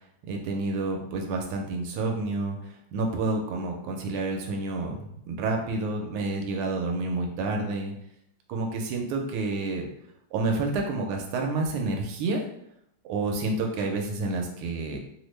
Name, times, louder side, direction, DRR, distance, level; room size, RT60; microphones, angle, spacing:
voice 1, 0.3-7.9 8.5-9.9 10.3-12.4 13.1-15.0, right 2 dB, 90° right, 2 dB, 1.5 m, -29 dB
3.5 x 2.0 x 3.1 m, 0.75 s
omnidirectional pair, 2.3 m